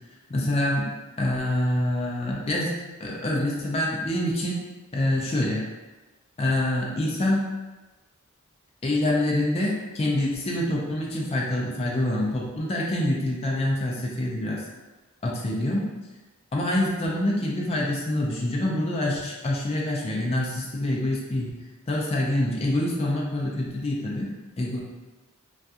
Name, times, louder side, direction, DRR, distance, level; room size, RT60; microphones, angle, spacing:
voice 1, 0.3-0.9 1.2-4.6 4.9-5.6 6.4-7.4 8.8-14.6 15.2-15.9 16.5-21.6 21.9-24.3 24.6-24.8, left 1 dB, 30° left, -3 dB, 0.4 m, -26 dB
2.3 x 2.2 x 2.7 m, 1.2 s
head